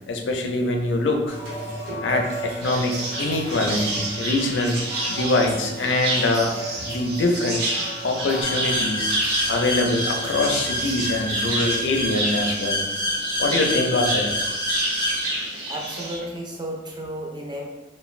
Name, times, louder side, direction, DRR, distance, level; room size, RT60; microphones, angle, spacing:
voice 1, 0.1-1.4 2.0-4.8 5.1-6.5 6.9-7.6 8.0-9.1 9.5-12.8 13.4-14.4, left 2 dB, 80° left, 4 dB, 0.4 m, -24 dB
sound 1, 1.3-12.1, right 1 dB, 80° right, 1.1 m, -36 dB
sound 2, 2.6-16.2, right 1 dB, 60° right, 0.7 m, -29 dB
sound 3, 8.4-15.2, equal, 25° left, 0.5 m, -28 dB
voice 2, 15.7-17.7, right 1 dB, 25° right, -1 dB, 0.5 m, -33 dB
2.4 x 2.2 x 3.1 m, 1.2 s
head